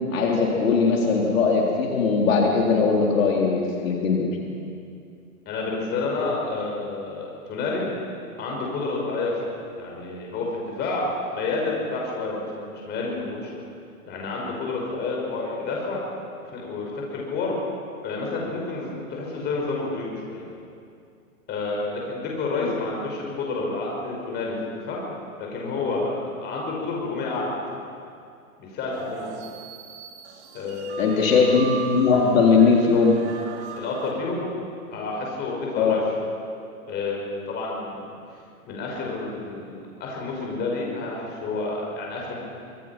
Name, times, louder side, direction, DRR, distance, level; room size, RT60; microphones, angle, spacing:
voice 1, 0.1-4.3 22.6-22.7 31.0-33.2 35.8-35.9, left 5 dB, 60° left, -2 dB, 3.9 m, -20 dB
voice 2, 5.5-7.9 8.4-11.0 11.3-13.6 14.0-16.0 16.5-17.5 18.0-20.4 21.5-25.0 25.4-27.6 28.6-29.3 30.5-31.2 33.8-34.4 34.9-36.3 36.9-38.0 38.6-39.7 40.0-42.3, left 3 dB, 25° left, -2 dB, 6.1 m, -29 dB
sound 1, 28.9-34.1, right 6 dB, 50° right, 2.9 m, -38 dB
25.5 x 22.0 x 6.0 m, 2.5 s
hypercardioid pair, 145°, 44 cm